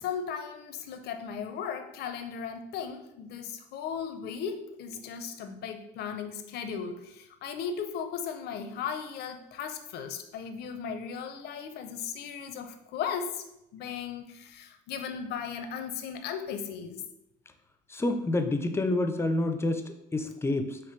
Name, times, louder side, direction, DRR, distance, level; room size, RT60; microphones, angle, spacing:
voice 1, 0.0-13.4 13.7-17.0 20.2-20.3, left 7 dB, 70° left, 7 dB, 0.6 m, -36 dB
voice 2, 17.9-19.8 20.1-20.8, left 2 dB, 15° left, 7 dB, 0.4 m, -28 dB
5.0 x 3.0 x 3.1 m, 0.84 s
cardioid pair, 110°, 17 cm